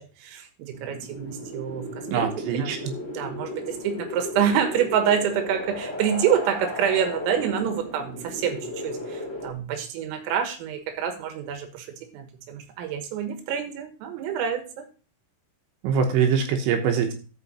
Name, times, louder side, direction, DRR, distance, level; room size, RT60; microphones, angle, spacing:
voice 1, 0.0-2.3 2.6-2.7 3.0-14.9, right 8 dB, 90° right, 7 dB, 4.1 m, -27 dB
sound 1, 0.7-9.5, left 1 dB, 15° left, 2.9 m, -35 dB
voice 2, 2.1-2.8 15.8-17.1, right 7 dB, 75° right, 5 dB, 3.1 m, -23 dB
13.5 x 5.7 x 4.2 m, 0.36 s
omnidirectional pair, 5.8 m